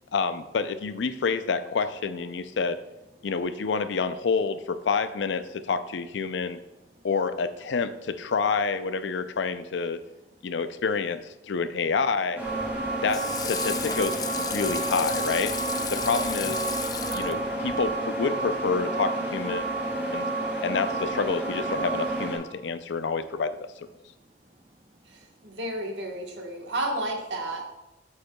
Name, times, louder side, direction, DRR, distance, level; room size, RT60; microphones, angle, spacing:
voice 1, 0.1-2.8 3.2-6.6 7.0-10.0 10.4-12.4 13.0-15.6 15.9-16.6 17.1-19.7 20.1-20.3 20.6-23.9, left 5 dB, 80° left, 12 dB, 0.5 m, -28 dB
voice 2, 6.3-7.1 10.0-10.6 22.5-23.0 24.0-26.7, right 1 dB, 35° right, 5 dB, 0.7 m, -61 dB
sound 1, 12.3-22.4, right 2 dB, 10° right, 2.4 m, -30 dB
Water / Sink (filling or washing), 12.4-17.9, left 6 dB, 20° left, 0.4 m, -35 dB
voice 3, 25.4-27.6, right 1 dB, 80° right, 2 dB, 1.3 m, -31 dB
8.3 x 7.9 x 2.3 m, 0.94 s
head